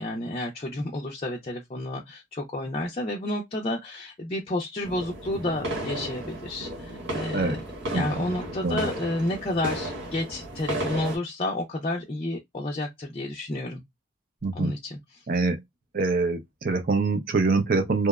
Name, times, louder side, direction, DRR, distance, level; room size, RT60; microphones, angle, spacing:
voice 1, 0.0-7.6 7.9-13.8 14.5-15.2, left 1 dB, 30° left, 0.4 m, -31 dB
sound 1, 4.8-11.2, right 1 dB, 75° right, 1.2 m, -34 dB
voice 2, 7.9-8.2 8.6-8.9 14.4-14.7 15.3-15.6 15.9-18.1, right 3 dB, 45° right, 0.5 m, -24 dB
2.8 x 2.1 x 2.2 m
head